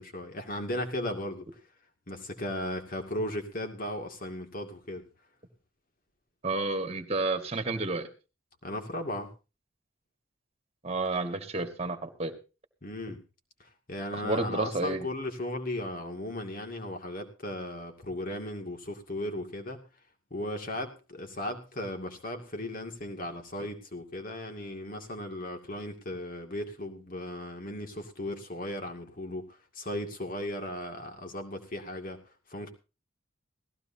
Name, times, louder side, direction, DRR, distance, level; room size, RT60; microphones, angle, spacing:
voice 1, 0.0-1.5 2.1-5.1 8.6-9.3 12.8-13.2 13.6-19.8 20.3-32.2 32.5-32.7, left 1 dB, 45° left, 5 dB, 2.3 m, -36 dB
voice 2, 6.4-8.1 10.8-12.3 14.1-15.1, right 2 dB, 30° right, 7 dB, 1.7 m, -30 dB
18.0 x 15.0 x 2.8 m, 0.31 s
head